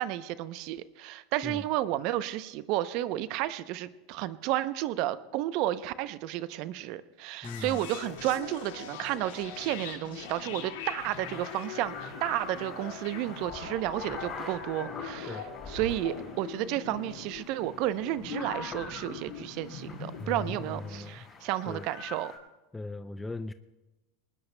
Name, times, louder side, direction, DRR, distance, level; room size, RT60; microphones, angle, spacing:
voice 1, 0.0-15.4 15.7-22.3, right 14 dB, 60° right, 14 dB, 0.6 m, -32 dB
sound 1, 7.4-21.0, left 7 dB, 80° left, 2.0 m, -42 dB
voice 2, 7.4-7.8 15.3-15.4 20.2-21.4 21.6-21.9 22.7-23.5, left 3 dB, 10° left, 11 dB, 0.4 m, -38 dB
sound 2, 11.0-22.4, left 3 dB, 30° left, 5.0 m, -45 dB
23.0 x 19.5 x 2.2 m, 1.1 s
supercardioid pair, 115°, 0 cm